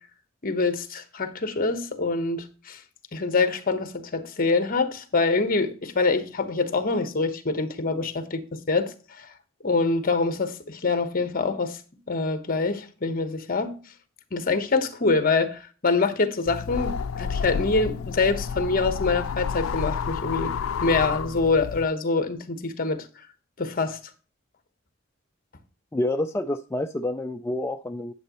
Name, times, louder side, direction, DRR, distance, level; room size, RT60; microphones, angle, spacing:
voice 1, 0.4-2.8 3.1-8.9 9.6-11.8 12.1-13.8 14.3-20.5 20.8-23.1 23.6-24.0, left 3 dB, 45° left, 1.1 m, -25 dB
sound 1, 16.5-21.9, left 6 dB, 90° left, 0.4 m, -30 dB
voice 2, 25.9-28.1, left 1 dB, 15° left, 0.3 m, -28 dB
9.6 x 8.9 x 3.0 m
head